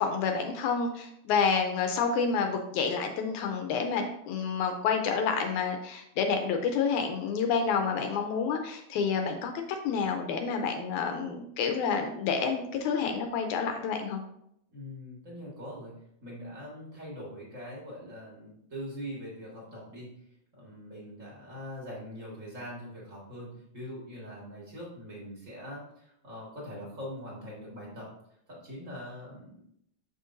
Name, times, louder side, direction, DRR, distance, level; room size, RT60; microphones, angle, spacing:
voice 1, 0.0-14.2, left 5 dB, 80° left, 5 dB, 1.9 m, -29 dB
voice 2, 14.7-20.2 20.5-28.1 28.5-29.6, equal, 35° right, -5 dB, 1.2 m, -42 dB
6.5 x 6.3 x 2.6 m, 0.73 s
omnidirectional pair, 3.8 m